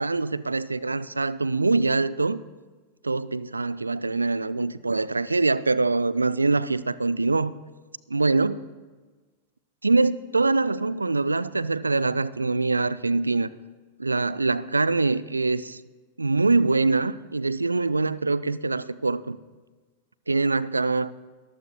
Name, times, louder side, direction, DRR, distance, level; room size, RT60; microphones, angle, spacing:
voice 1, 0.0-2.4 3.0-7.5 8.1-8.7 9.8-13.5 14.0-15.8 16.2-19.4 20.3-21.1, right 3 dB, 80° right, 18 dB, 0.3 m, -24 dB
22.0 x 14.5 x 2.2 m, 1.3 s
figure-of-eight pair, 90°, 0 cm